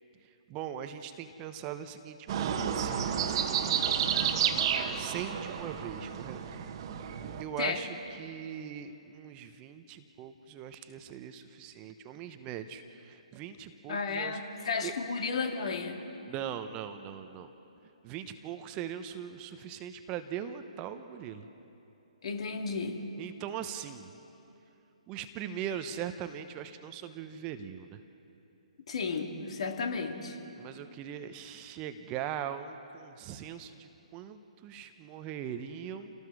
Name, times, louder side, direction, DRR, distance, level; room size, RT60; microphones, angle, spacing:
voice 1, 0.5-4.1 5.0-6.4 7.4-14.9 16.3-17.5 18.0-21.5 23.2-24.1 25.1-28.0 30.6-36.1, right 9 dB, 25° right, 9 dB, 0.9 m, -40 dB
sound 1, 2.3-7.4, right 8 dB, 40° right, 1.3 m, -31 dB
voice 2, 13.9-16.0 22.2-23.0 28.9-30.4, left 4 dB, 60° left, 4 dB, 2.3 m, -33 dB
29.0 x 18.5 x 4.8 m, 2.9 s
figure-of-eight pair, 135°, 4 cm